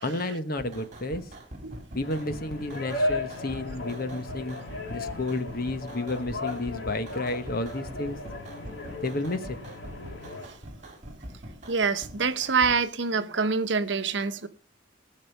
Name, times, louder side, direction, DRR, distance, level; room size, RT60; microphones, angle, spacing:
voice 1, 0.0-1.2 1.9-4.6 4.9-8.2 9.0-9.6, left 2 dB, 55° left, 1.2 m, -31 dB
sound 1, 0.6-12.8, right 1 dB, 40° right, 2.9 m, -44 dB
sound 2, 2.0-10.5, left 2 dB, 85° left, 2.8 m, -36 dB
voice 2, 11.7-14.5, right 5 dB, 70° right, 0.9 m, -26 dB
19.0 x 6.7 x 5.4 m
head